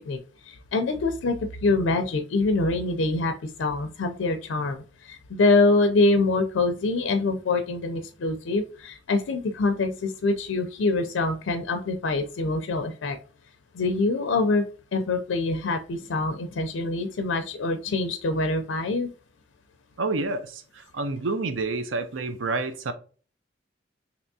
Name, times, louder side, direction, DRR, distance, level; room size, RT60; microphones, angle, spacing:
voice 1, 0.5-1.4 1.6-3.3 3.6-13.2 13.7-14.6 14.9-19.1, left 3 dB, 80° left, 0.4 m, -25 dB
voice 2, 20.0-22.9, right 3 dB, 85° right, 0.5 m, -29 dB
3.4 x 2.9 x 2.6 m
head